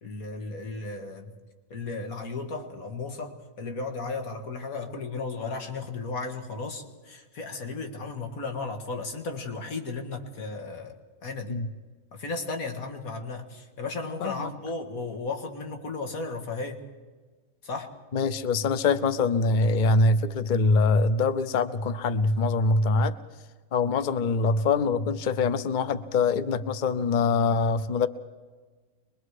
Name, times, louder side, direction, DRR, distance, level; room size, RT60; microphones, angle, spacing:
voice 1, 0.0-1.3 1.7-10.9 11.2-11.6 12.1-16.8 17.6-17.9, left 3 dB, 85° left, 5 dB, 2.3 m, -35 dB
voice 2, 14.2-14.5 18.1-23.2 23.7-28.1, left 3 dB, 40° left, 12 dB, 0.8 m, -24 dB
25.0 x 21.5 x 4.8 m, 1.4 s
omnidirectional pair, 1.4 m